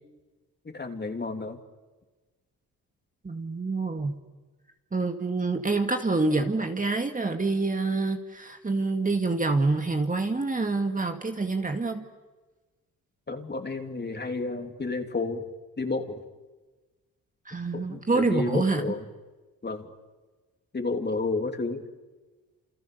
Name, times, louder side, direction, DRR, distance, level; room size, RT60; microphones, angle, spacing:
voice 1, 0.6-1.6 13.3-15.5 15.8-16.2 17.7-19.0 19.6-19.9 20.7-21.8, left 3 dB, 30° left, 5 dB, 3.2 m, -31 dB
voice 2, 3.2-4.2 4.9-12.0 17.5-18.9, right 3 dB, 25° right, 5 dB, 2.1 m, -27 dB
30.0 x 28.0 x 7.0 m, 1.2 s
cardioid pair, 80°, 35 cm